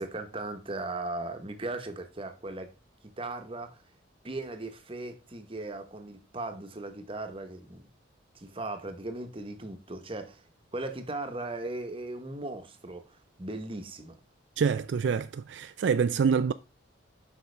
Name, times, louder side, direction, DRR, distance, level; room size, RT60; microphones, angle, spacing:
voice 1, 0.0-2.7 3.2-3.8 4.2-7.9 8.3-10.5 10.7-14.2, right 2 dB, 25° right, 1.0 m, -38 dB
voice 2, 14.6-16.5, right 6 dB, 65° right, 0.3 m, -26 dB
8.2 x 6.0 x 3.3 m
head